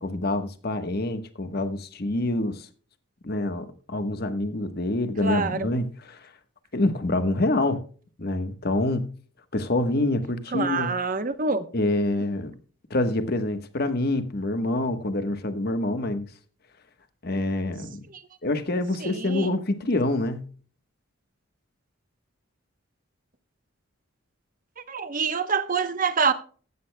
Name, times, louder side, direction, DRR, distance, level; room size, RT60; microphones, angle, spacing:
voice 1, 0.0-2.7 3.2-6.3 6.7-7.8 8.2-9.1 9.5-10.9 11.7-12.5 12.9-16.3 17.2-18.0 18.4-20.5, left 2 dB, 50° left, 1.2 m, -26 dB
voice 2, 5.2-5.7 10.5-11.7 18.1-18.2 19.0-19.6 24.9-26.3, right 4 dB, 40° right, 0.9 m, -26 dB
15.5 x 12.5 x 2.2 m
head